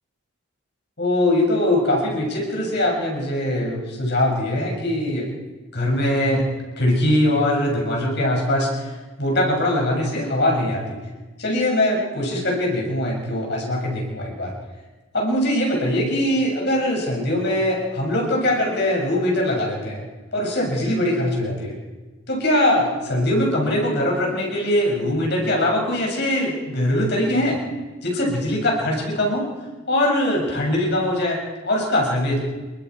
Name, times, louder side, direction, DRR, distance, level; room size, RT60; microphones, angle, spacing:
voice 1, 1.0-5.3 5.7-6.5 6.8-8.9 9.2-11.0 11.4-14.5 15.1-20.0 20.3-21.8 22.3-27.6 28.0-29.5 29.9-32.4, left 1 dB, 55° left, -1 dB, 6.9 m, -22 dB
28.0 x 22.5 x 4.9 m, 1.2 s
head